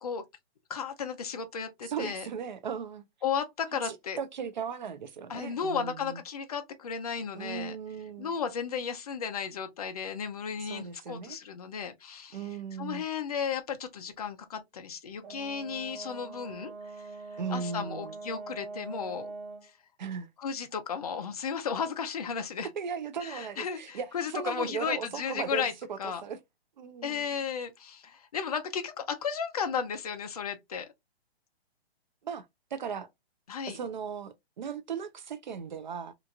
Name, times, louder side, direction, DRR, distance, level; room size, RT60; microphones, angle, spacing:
voice 1, 0.7-2.3 3.2-4.2 5.3-7.8 8.2-12.4 12.8-19.3 19.6-19.7 20.4-22.7 23.2-25.7 26.0-26.2 27.0-30.9 33.5-33.8, left 6 dB, 35° left, 0.4 m, -34 dB
voice 2, 1.8-3.0 4.2-6.2 7.3-8.3 10.6-11.4 12.3-13.0 17.4-18.2 20.0-20.3 22.6-24.1 24.3-26.4 26.8-27.4 32.2-32.5 32.7-33.1 33.7-36.1, right 6 dB, 45° right, 0.5 m, -37 dB
Brass instrument, 15.2-19.7, right 3 dB, 85° right, 1.6 m, -43 dB
2.9 x 2.5 x 2.3 m
hypercardioid pair, 165°, 32 cm